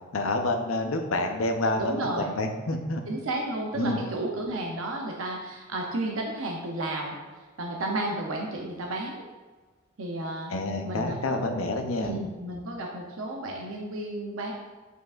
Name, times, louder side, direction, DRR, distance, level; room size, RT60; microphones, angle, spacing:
voice 1, 0.1-3.0 3.7-4.0 10.5-12.1, left 2 dB, 90° left, 4 dB, 0.7 m, -28 dB
voice 2, 1.8-2.3 3.1-9.2 10.0-10.5 10.8-11.4 12.0-14.5, right 2 dB, 80° right, 0 dB, 0.7 m, -32 dB
8.0 x 4.8 x 2.5 m, 1.3 s
head